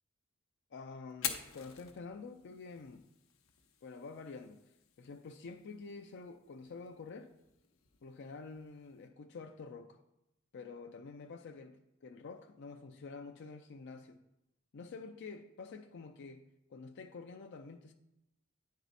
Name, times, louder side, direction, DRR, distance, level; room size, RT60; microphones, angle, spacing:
voice 1, 0.7-3.0 3.8-4.6 5.0-7.3 8.0-10.0 10.5-14.2 14.7-16.4 16.7-17.9, left 4 dB, 60° left, 0.4 m, -48 dB
Fire, 1.1-9.1, left 8 dB, 80° left, 0.8 m, -48 dB
9.2 x 4.5 x 4.1 m
head